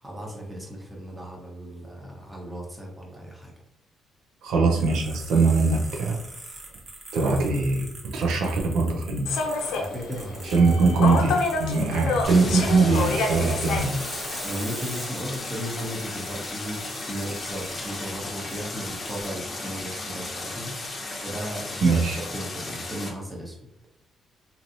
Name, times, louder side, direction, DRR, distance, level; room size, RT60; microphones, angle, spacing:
voice 1, 0.0-3.5 9.7-10.6 14.4-20.8 21.2-23.5, equal, 10° right, -2 dB, 1.0 m, -35 dB
voice 2, 4.4-6.2 7.1-9.3 10.5-13.9 21.8-22.2, right 3 dB, 85° right, 0 dB, 0.6 m, -22 dB
sound 1, 4.6-18.0 18.5-18.6 19.0-19.3, right 2 dB, 35° right, 1.0 m, -43 dB
Human voice / Subway metro underground, 9.2-15.0, left 3 dB, 90° left, 0.6 m, -29 dB
Stream, 12.2-23.1, left 2 dB, 40° left, 0.8 m, -35 dB
3.0 x 2.8 x 2.6 m, 0.83 s
cardioid pair, 90°, 0 cm